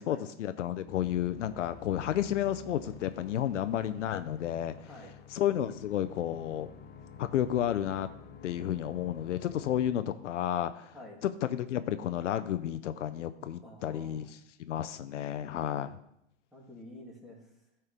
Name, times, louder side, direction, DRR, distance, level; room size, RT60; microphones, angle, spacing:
voice 1, 0.0-4.7 5.3-6.7 7.2-8.1 8.4-10.9 11.4-14.3 14.7-16.0, left 11 dB, 90° left, 12 dB, 0.6 m, -31 dB
sound 1, 0.9-9.9, left 6 dB, 25° left, 0.7 m, -50 dB
voice 2, 4.8-5.1 10.9-11.2 13.6-14.3 16.5-17.5, left 1 dB, ahead, -5 dB, 2.5 m, -49 dB
12.0 x 4.5 x 3.4 m, 0.77 s
hypercardioid pair, 110°, 36 cm